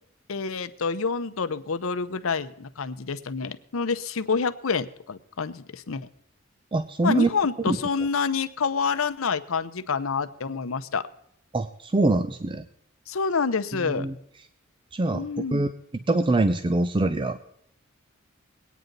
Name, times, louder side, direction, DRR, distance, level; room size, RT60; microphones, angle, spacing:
voice 1, 0.3-6.1 7.0-11.1 13.1-14.1 15.1-15.7, left 5 dB, 75° left, 12 dB, 0.7 m, -28 dB
voice 2, 6.7-7.3 7.7-7.8 11.5-12.6 13.8-14.1 14.9-15.7 16.1-17.4, right 2 dB, 25° right, 10 dB, 0.4 m, -24 dB
22.0 x 9.2 x 3.9 m, 0.74 s
head